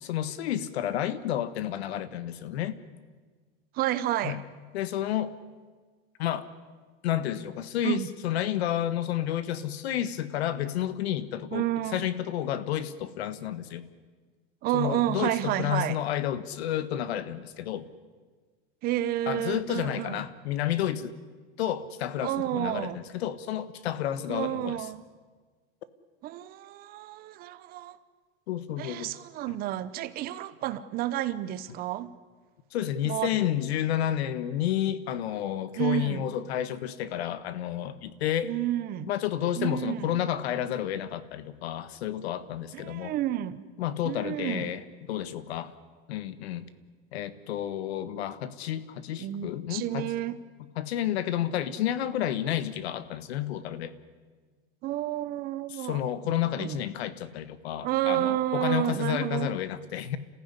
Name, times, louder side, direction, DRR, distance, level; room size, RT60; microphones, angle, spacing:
voice 1, 0.0-2.8 4.2-4.4 4.7-5.3 6.2-6.5 7.0-11.7 11.9-13.9 14.7-17.8 19.3-21.1 21.6-24.8 28.5-29.1 32.7-38.5 39.1-43.1 43.8-45.7 46.1-46.7 47.1-50.1 50.7-53.9 55.7-60.2, left 11 dB, 85° left, 14 dB, 1.6 m, -30 dB
voice 2, 3.7-4.4 7.8-8.1 11.5-12.1 14.6-16.0 18.8-20.2 22.2-23.0 24.3-25.0 26.2-28.0 28.8-32.1 33.0-33.3 35.8-36.4 38.4-39.1 39.6-40.2 42.7-43.6 44.0-44.7 49.2-50.4 54.8-56.8 57.8-59.5, right 13 dB, 30° right, 15 dB, 0.8 m, -30 dB
28.5 x 15.5 x 9.9 m, 1.5 s
supercardioid pair, 165°, 31 cm